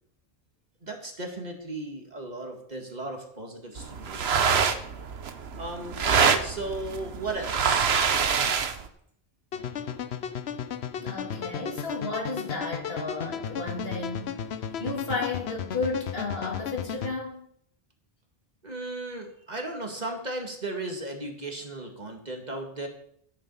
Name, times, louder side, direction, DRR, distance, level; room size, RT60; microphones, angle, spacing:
voice 1, 0.8-4.7 5.5-7.9 18.6-22.9, right 2 dB, 45° right, 3 dB, 2.1 m, -36 dB
sound 1, 3.8-8.9, right 6 dB, 80° right, 1.2 m, -25 dB
sound 2, 9.5-17.1, left 8 dB, 90° left, 1.0 m, -34 dB
voice 2, 10.9-14.4 14.8-17.4, left 3 dB, 70° left, -1 dB, 3.3 m, -33 dB
11.5 x 9.9 x 5.5 m, 0.67 s
omnidirectional pair, 1.0 m